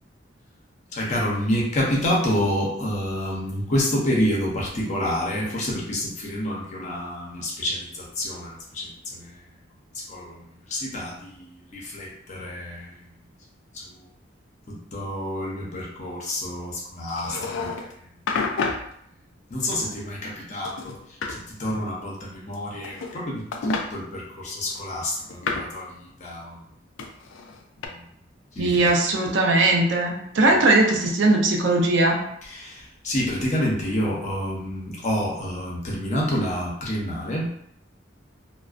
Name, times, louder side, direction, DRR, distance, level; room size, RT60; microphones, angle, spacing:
voice 1, 0.9-9.4 9.9-10.4 10.7-12.9 13.7-14.0 14.7-17.7 19.5-20.9 21.3-26.6 27.8-28.0 28.6-28.8 32.5-37.5, equal, 40° left, -4 dB, 0.7 m, -28 dB
sound 1, 17.1-17.9 18.3-18.9 19.7-20.4 20.6-21.4 22.5-23.2 23.5-23.9 24.7-25.8 27.0-27.9, left 4 dB, 80° left, 0.3 m, -30 dB
voice 2, 28.6-32.3, right 2 dB, 70° right, 1 dB, 0.5 m, -19 dB
2.4 x 2.2 x 2.4 m, 0.71 s
head